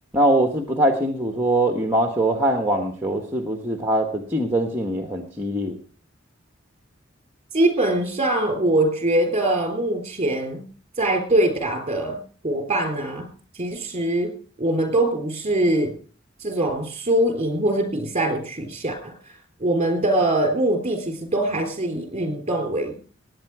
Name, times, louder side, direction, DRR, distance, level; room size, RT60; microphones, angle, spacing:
voice 1, 0.1-5.8, right 1 dB, 10° right, 4 dB, 1.3 m, -22 dB
voice 2, 7.5-10.6 11.0-12.2 12.4-13.3 13.6-14.3 14.6-16.0 16.4-19.1 19.6-23.0, right 1 dB, 30° right, 5 dB, 3.7 m, -23 dB
19.0 x 9.1 x 4.8 m, 0.40 s
head